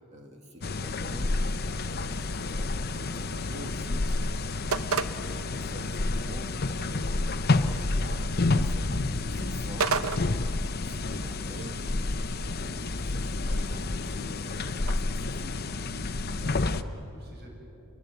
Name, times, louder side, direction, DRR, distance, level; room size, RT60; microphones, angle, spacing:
voice 1, 0.1-1.5 1.9-5.1 5.5-7.3 7.7-10.5 10.8-12.3 12.6-15.7, right 1 dB, 30° right, 2 dB, 2.0 m, -46 dB
sound 1, 0.6-16.8, left 2 dB, 45° left, 0.8 m, -29 dB
sound 2, 1.2-14.9, right 5 dB, 70° right, 0.8 m, -39 dB
voice 2, 5.0-5.4 7.1-7.4 11.4-11.8 16.3-17.5, equal, 45° right, 0 dB, 7.3 m, -50 dB
28.5 x 22.0 x 8.0 m, 2.9 s
head